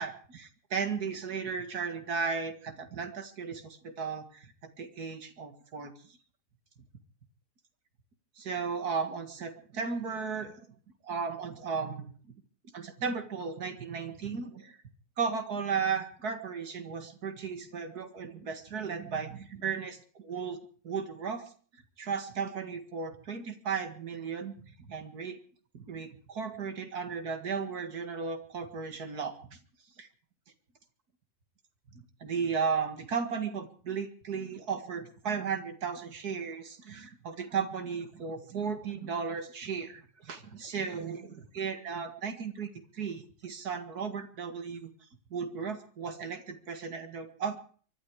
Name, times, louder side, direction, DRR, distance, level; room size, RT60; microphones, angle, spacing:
voice 1, 0.0-6.2 8.4-10.7 11.0-12.1 12.7-14.8 15.2-20.6 20.8-21.4 22.0-24.5 24.8-25.4 25.7-29.6 30.0-30.1 32.2-44.9 45.3-47.6, right 5 dB, 65° right, 7 dB, 2.4 m, -35 dB
24.0 x 12.0 x 4.8 m, 0.43 s
omnidirectional pair, 1.8 m